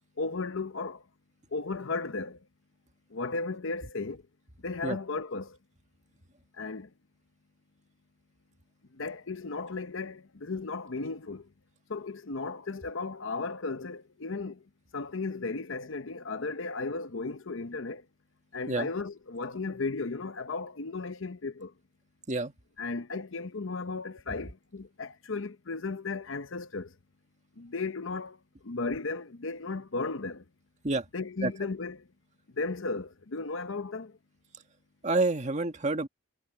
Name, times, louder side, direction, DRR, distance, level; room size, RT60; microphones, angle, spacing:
voice 1, 0.2-1.0 1.5-2.4 3.1-4.2 4.6-5.6 6.6-6.9 8.9-11.5 11.9-14.6 14.9-18.0 18.5-21.7 22.8-26.9 27.6-28.4 28.6-30.4 31.1-32.1 32.5-34.2, left 3 dB, 65° left, 0.9 m, -35 dB
voice 2, 35.0-36.1, right 3 dB, 35° right, 1.7 m, -28 dB
head